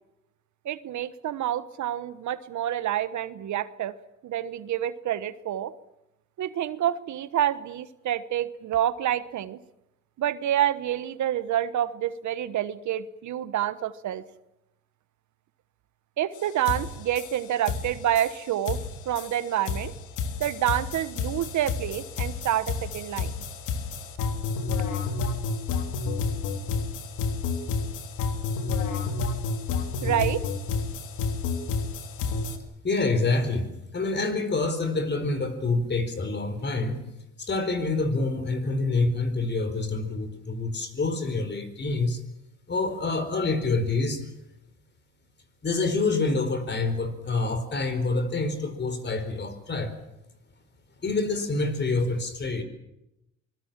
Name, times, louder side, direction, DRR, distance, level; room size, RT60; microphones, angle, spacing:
voice 1, 0.6-3.9 4.2-5.7 6.4-9.6 10.2-14.2 16.2-18.8 19.0-19.9 20.4-23.4 30.0-30.4, right 11 dB, 70° right, 14 dB, 1.2 m, -28 dB
sound 1, 16.3-16.4 16.7-32.6, left 4 dB, 90° left, 2.9 m, -30 dB
voice 2, 32.8-37.0 37.4-42.2 42.7-44.3 45.6-50.0 51.0-52.6, left 3 dB, 35° left, 10 dB, 4.5 m, -27 dB
24.5 x 21.0 x 7.5 m, 0.88 s
cardioid pair, 90°, 30 cm